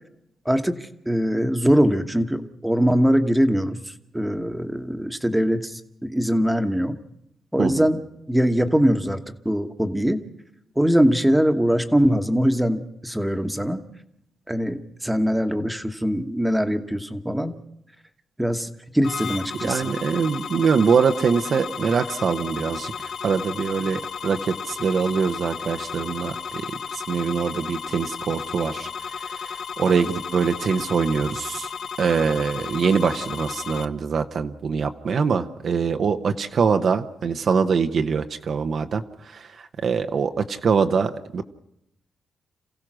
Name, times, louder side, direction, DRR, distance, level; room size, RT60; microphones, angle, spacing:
voice 1, 0.4-0.8 1.1-3.8 4.1-7.0 7.5-8.0 8.3-9.2 9.4-10.2 10.8-13.8 14.5-17.6 18.4-18.7 18.9-19.9, equal, 5° right, 7 dB, 1.3 m, -22 dB
sound 1, 19.0-33.8, left 6 dB, 65° left, 0.7 m, -34 dB
voice 2, 19.6-31.7 32.0-41.4, right 5 dB, 65° right, 8 dB, 0.9 m, -24 dB
27.5 x 15.5 x 6.3 m, 0.80 s
cardioid pair, 90°, 0 cm